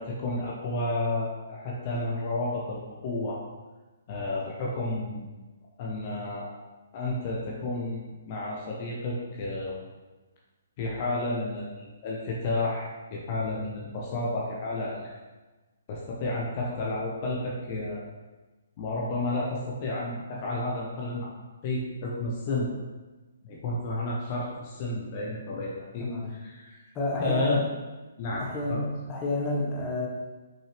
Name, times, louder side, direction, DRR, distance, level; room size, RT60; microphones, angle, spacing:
voice 1, 0.0-3.4 4.1-5.3 5.8-6.5 6.9-9.7 10.8-15.1 15.9-18.0 18.8-21.3 21.6-22.7 23.4-26.1 26.4-26.8 27.2-27.6 28.2-28.8, left 2 dB, 40° left, -4 dB, 1.2 m, -31 dB
voice 2, 26.0-26.3 26.9-27.6 28.4-30.1, left 2 dB, 25° left, -3 dB, 1.4 m, -30 dB
6.1 x 5.7 x 3.5 m, 1.2 s
figure-of-eight pair, 130°, 0 cm